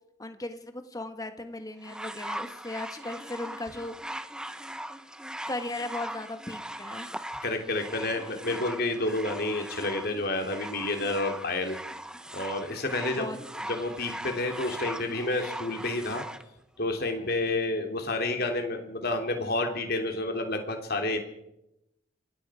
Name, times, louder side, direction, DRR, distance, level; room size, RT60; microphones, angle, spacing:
voice 1, 0.2-3.9 5.5-7.1 13.2-13.4, left 2 dB, 20° left, 8 dB, 1.5 m, -37 dB
sound 1, 1.8-16.4 17.3-17.4, right 1 dB, 5° right, 0.9 m, -40 dB
voice 2, 7.4-11.8 12.3-16.2 16.8-21.2, left 2 dB, 50° left, 4 dB, 3.2 m, -30 dB
26.5 x 20.5 x 5.0 m, 0.87 s
head